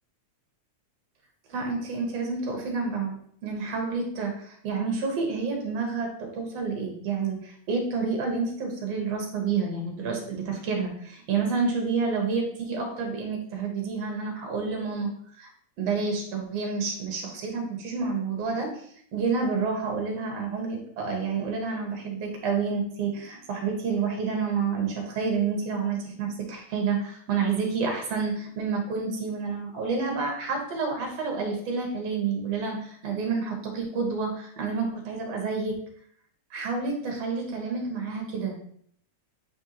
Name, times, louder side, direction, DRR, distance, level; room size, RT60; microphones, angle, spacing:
voice 1, 1.5-15.1 15.4-15.5 15.8-18.9 19.1-35.8 36.5-38.6, right 5 dB, 65° right, 1 dB, 2.2 m, -29 dB
7.6 x 4.4 x 2.8 m, 0.63 s
omnidirectional pair, 3.3 m